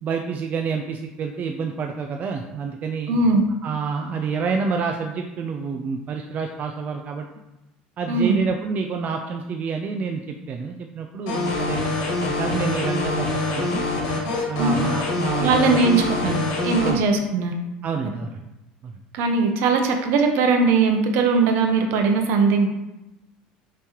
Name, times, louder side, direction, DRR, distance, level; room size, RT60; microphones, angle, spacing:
voice 1, 0.0-3.1 3.6-7.3 8.0-11.8 12.2-13.9 14.5-15.9 16.8-17.0 17.8-18.4 18.8-19.0, right 5 dB, 40° right, 3 dB, 0.4 m, -28 dB
voice 2, 3.1-3.4 8.1-8.4 14.6-14.7 15.4-17.5 19.1-22.7, right 4 dB, 65° right, 4 dB, 0.7 m, -20 dB
sound 1, 11.3-16.9, left 3 dB, 75° left, 1.3 m, -25 dB
5.5 x 3.1 x 2.9 m, 0.98 s
supercardioid pair, 90°, 4 cm